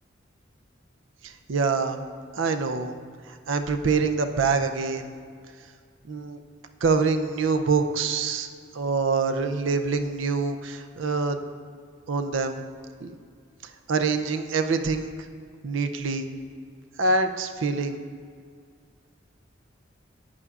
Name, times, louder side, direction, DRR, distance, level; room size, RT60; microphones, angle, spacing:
voice 1, 1.2-2.0 2.3-3.0 3.3-5.1 6.0-6.4 6.8-8.5 8.7-11.4 12.1-12.6 13.0-13.1 13.9-15.1 15.6-16.3 17.0-18.0, right 4 dB, 85° right, 7 dB, 0.5 m, -25 dB
11.0 x 8.4 x 2.4 m, 2.1 s
head